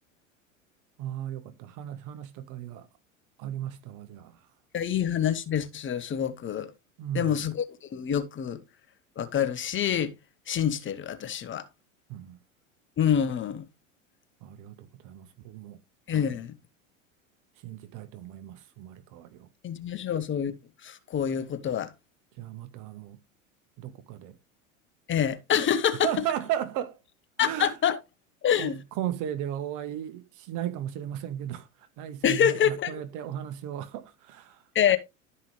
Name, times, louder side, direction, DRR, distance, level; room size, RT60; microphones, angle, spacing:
voice 1, 1.0-2.9 3.4-4.4 7.0-7.5 12.1-12.4 14.4-15.8 16.1-16.4 17.6-19.5 22.4-23.2 23.8-24.4 26.0-27.0 27.4-27.8 28.6-31.7 32.0-34.6, right 11 dB, 50° right, 1.4 m, -35 dB
voice 2, 4.7-6.7 7.1-7.6 7.9-8.6 9.2-10.1 10.5-11.7 13.0-13.7 16.1-16.5 19.6-20.5 20.8-21.9 25.1-26.1 27.4-28.0 28.4-28.8 32.2-33.0 34.7-35.0, left 9 dB, 30° left, 1.3 m, -26 dB
12.5 x 5.4 x 3.2 m
hypercardioid pair, 90°, 40 cm